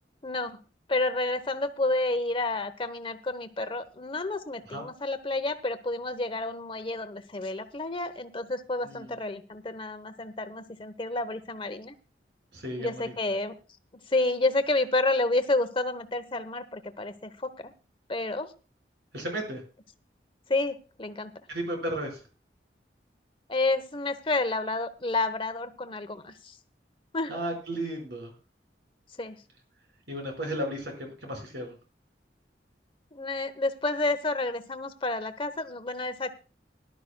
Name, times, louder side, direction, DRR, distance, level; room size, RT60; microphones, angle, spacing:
voice 1, 0.2-0.6 0.9-11.9 12.8-13.5 14.1-17.7 18.1-18.5 20.5-21.3 23.5-26.5 27.1-27.3 29.2-29.4 33.1-36.3, left 2 dB, 30° left, 11 dB, 1.0 m, -30 dB
voice 2, 8.8-9.2 12.5-13.1 19.1-19.6 21.5-22.2 27.3-28.3 30.1-31.7, right 1 dB, 70° right, 2 dB, 5.2 m, -34 dB
19.5 x 12.0 x 2.3 m, 0.33 s
head